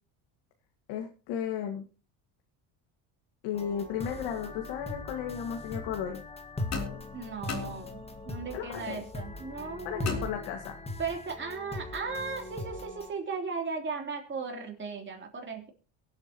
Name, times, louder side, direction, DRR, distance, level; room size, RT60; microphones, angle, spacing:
voice 1, 0.9-1.8 3.4-6.2 8.5-9.0 9.9-10.8, left 8 dB, 80° left, 3 dB, 2.1 m, -34 dB
sound 1, 3.5-13.1, left 2 dB, 15° left, 1.8 m, -40 dB
sound 2, 6.7-8.4 10.0-11.0, left 5 dB, 40° left, 3.2 m, -39 dB
voice 2, 7.1-10.3 11.0-15.7, right 5 dB, 25° right, 2 dB, 3.4 m, -37 dB
23.0 x 9.0 x 3.0 m, 0.34 s
cardioid pair, 115°, 42 cm